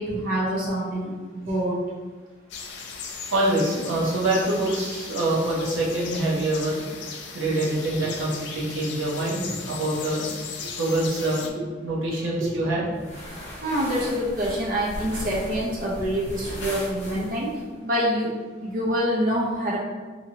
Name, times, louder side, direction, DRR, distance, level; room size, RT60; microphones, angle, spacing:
voice 1, 0.0-1.8 7.5-7.6 7.9-8.1 9.1-9.6 10.6-10.7 11.5-11.6 13.6-17.5 17.8-18.3 18.6-19.8, equal, 45° right, -5 dB, 0.6 m, -26 dB
sound 1, 2.5-11.5, left 5 dB, 60° left, 0.3 m, -37 dB
voice 2, 3.3-6.8 7.3-10.2 10.8-11.5 11.8-12.8, right 1 dB, 80° right, -4 dB, 0.7 m, -25 dB
sound 2, 13.0-17.6, equal, 35° left, 0.7 m, -37 dB
2.8 x 2.6 x 2.8 m, 1.4 s
head